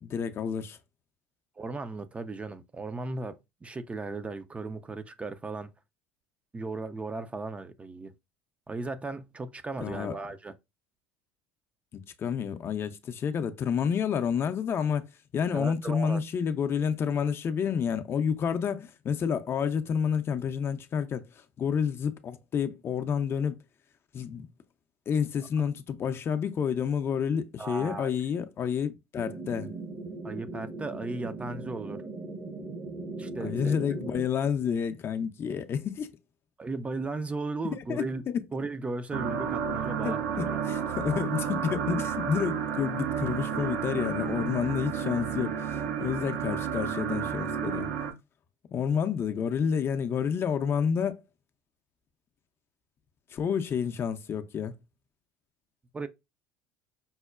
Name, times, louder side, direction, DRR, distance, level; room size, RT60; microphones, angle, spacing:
voice 1, 0.0-0.8 9.8-10.2 11.9-15.0 15.3-21.3 21.6-23.6 24.1-24.5 25.1-29.7 33.4-36.1 37.7-38.4 40.0-47.9 48.7-51.2 53.3-54.7, left 7 dB, 40° left, 0.5 m, -29 dB
voice 2, 1.6-5.7 6.5-8.1 8.7-10.5 15.5-16.2 27.6-28.1 30.2-32.0 33.2-33.8 36.6-38.2 38.5-40.6 55.9-56.1, right 3 dB, 20° right, 0.4 m, -36 dB
sound 1, 29.2-34.3, right 2 dB, 45° right, 0.8 m, -39 dB
sound 2, 39.1-48.1, right 7 dB, 80° right, 0.7 m, -31 dB
5.4 x 2.1 x 2.3 m
hypercardioid pair, 75°, 7 cm